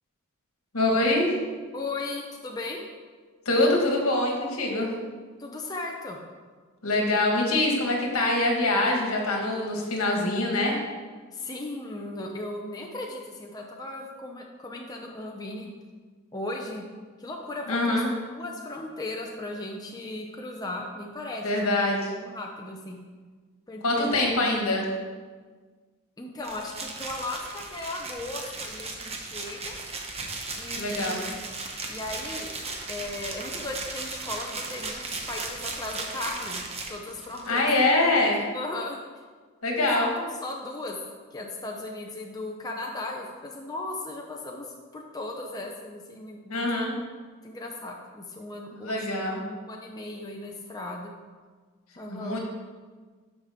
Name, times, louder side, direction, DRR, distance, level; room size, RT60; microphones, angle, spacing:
voice 1, 0.7-1.3 3.4-4.9 6.8-10.8 17.7-18.1 21.4-22.0 23.8-24.9 30.8-31.2 37.5-38.4 39.6-40.1 46.5-46.9 48.7-49.4 52.1-52.4, left 2 dB, 75° left, 0 dB, 1.7 m, -24 dB
voice 2, 1.7-2.8 5.4-6.2 11.3-15.7 16.3-16.8 17.2-21.7 22.2-23.0 23.7-24.2 26.2-29.8 30.6-31.2 31.9-32.5 32.9-36.6 36.9-37.7 38.3-39.0 39.8-41.0 41.3-46.9 47.4-49.2 49.6-51.1 52.0-52.4, left 2 dB, 15° left, 0 dB, 0.6 m, -37 dB
sound 1, 26.4-37.6, right 3 dB, 25° right, 0.8 m, -36 dB
12.0 x 5.2 x 3.6 m, 1.5 s
head